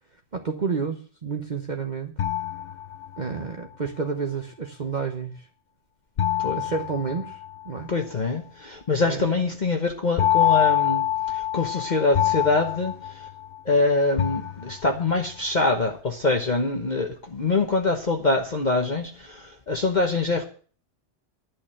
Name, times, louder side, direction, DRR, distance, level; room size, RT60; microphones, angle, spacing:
voice 1, 0.3-2.2 3.2-5.5 6.6-7.9 9.0-9.3, right 5 dB, 40° right, 4 dB, 1.1 m, -30 dB
sound 1, 2.2-3.4 6.2-7.8 10.2-13.8 14.2-15.1, left 11 dB, 55° left, 0.9 m, -25 dB
voice 2, 7.9-13.3 13.6-20.4, left 3 dB, 40° left, 2 dB, 1.3 m, -24 dB
11.0 x 6.5 x 8.9 m, 0.40 s
omnidirectional pair, 1.3 m